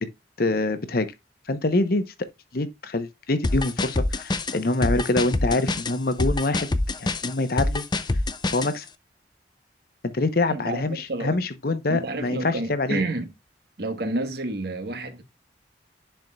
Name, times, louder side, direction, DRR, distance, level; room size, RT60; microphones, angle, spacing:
voice 1, 0.4-1.1 1.5-2.0 2.5-6.7 7.0-7.8 8.5-8.9 10.1-13.0, left 2 dB, 55° left, 0.8 m, -25 dB
sound 1, 3.4-8.7, left 2 dB, 25° left, 0.5 m, -25 dB
voice 2, 10.5-11.4 11.9-13.3 13.8-15.2, right 2 dB, 60° right, 1.3 m, -29 dB
10.5 x 4.6 x 2.3 m
head